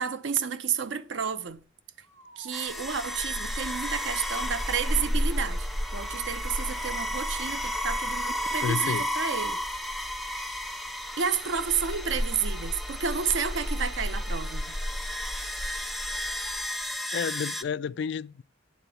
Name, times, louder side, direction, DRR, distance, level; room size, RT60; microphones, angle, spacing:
voice 1, 0.0-1.6 2.4-9.6 11.2-14.7, right 7 dB, 75° right, 0.7 m, -31 dB
sound 1, 2.0-3.3 3.9-4.9 6.2-8.3 12.2-17.4, right 2 dB, 90° right, 1.8 m, -55 dB
sound 2, 2.5-17.6, equal, ahead, 0.5 m, -32 dB
voice 2, 8.6-9.1 16.9-18.4, left 6 dB, 65° left, 0.3 m, -31 dB
9.4 x 3.8 x 6.9 m
head